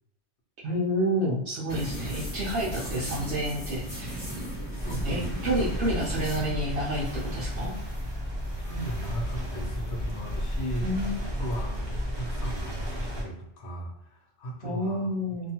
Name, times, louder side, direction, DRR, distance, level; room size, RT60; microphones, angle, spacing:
voice 1, 0.6-4.3 5.0-7.8 10.8-11.1 14.6-15.5, equal, 70° right, -6 dB, 0.9 m, -29 dB
sound 1, 1.7-11.8, right 1 dB, 25° left, 1.0 m, -38 dB
voice 2, 4.8-5.3 8.6-10.9 11.2-15.1, equal, 70° left, 0 dB, 1.0 m, -37 dB
sound 2, 4.8-13.2, equal, 30° right, 0.6 m, -33 dB
2.7 x 2.3 x 2.8 m, 0.81 s
omnidirectional pair, 1.2 m